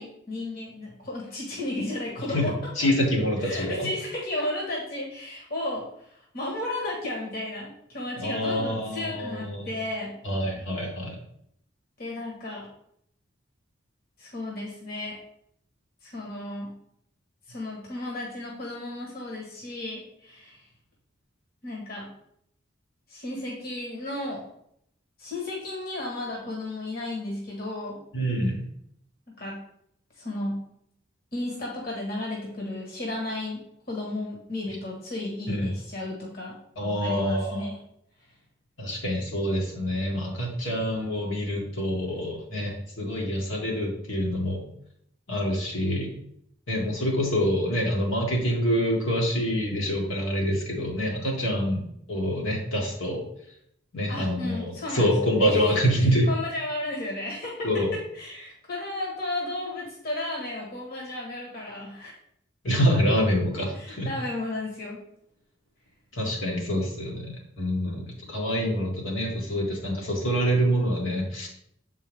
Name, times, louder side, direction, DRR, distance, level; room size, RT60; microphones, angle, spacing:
voice 1, 0.0-2.9 3.4-10.1 12.0-12.7 14.2-15.2 16.0-16.7 17.5-20.6 21.6-22.1 23.1-24.5 25.2-28.0 29.3-29.6 30.2-30.6 31.3-33.6 33.9-36.6 37.0-37.8 54.1-62.1 63.5-65.0, left 2 dB, 50° left, -2 dB, 1.4 m, -34 dB
voice 2, 2.8-3.9 8.2-9.7 10.2-11.2 28.1-28.6 35.5-35.7 36.8-37.7 38.8-44.6 45.3-46.1 46.7-53.2 53.9-56.3 57.6-57.9 62.6-64.1 66.1-71.5, equal, 75° left, -2 dB, 1.8 m, -26 dB
7.3 x 4.6 x 3.4 m, 0.71 s
head